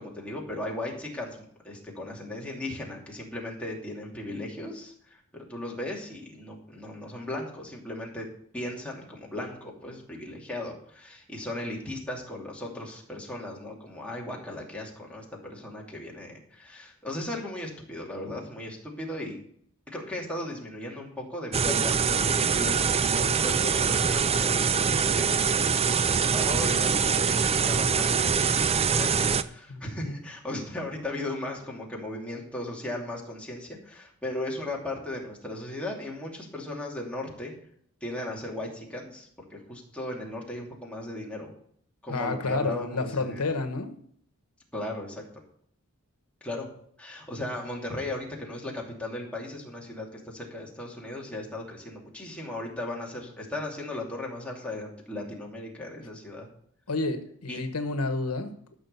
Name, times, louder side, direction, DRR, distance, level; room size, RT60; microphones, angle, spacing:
voice 1, 0.0-1.4 1.6-8.3 8.5-19.4 19.9-37.5 38.0-41.5 42.0-43.5 44.7-45.3 46.4-46.7 47.0-56.5 57.5-57.6, left 1 dB, 5° left, 2.7 m, -37 dB
sound 1, 21.5-29.4, right 6 dB, 30° right, 0.5 m, -24 dB
voice 2, 29.7-30.2 42.1-43.9 56.9-58.8, left 3 dB, 90° left, 1.2 m, -30 dB
13.5 x 6.2 x 6.8 m
head